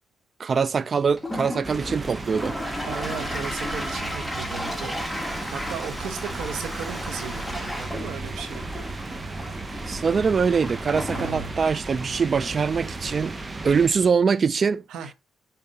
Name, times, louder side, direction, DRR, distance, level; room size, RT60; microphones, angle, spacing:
voice 1, 0.4-2.6 9.9-13.4 13.6-14.8, right 5 dB, 40° right, 0.3 m, -23 dB
Toilet flush, 1.0-14.2, left 1 dB, ahead, 1.4 m, -35 dB
sound 1, 1.6-13.9, right 2 dB, 25° right, 0.9 m, -35 dB
voice 2, 2.9-8.8 11.1-11.5 14.9-15.1, right 7 dB, 80° right, 1.0 m, -36 dB
5.9 x 4.2 x 5.3 m
cardioid pair, 90°, 0 cm